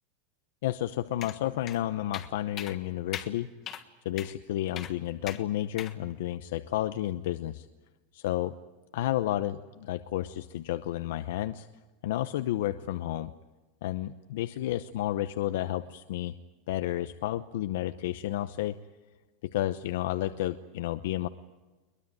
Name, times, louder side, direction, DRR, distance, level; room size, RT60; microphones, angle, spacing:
voice 1, 0.6-3.5 4.0-7.7 8.1-8.6 8.9-11.7 12.0-13.3 13.8-16.4 16.7-18.8 19.4-21.3, left 13 dB, 75° left, 10 dB, 0.9 m, -31 dB
sound 1, 1.2-1.4 1.7-1.8 2.1-2.3 2.6-2.8 3.1-3.3 3.7-3.8 4.2-4.3 4.8-4.9 5.3-5.4 5.8-5.9, left 10 dB, 25° left, 1.5 m, -39 dB
23.0 x 21.0 x 9.1 m, 1.2 s
supercardioid pair, 170°, 0 cm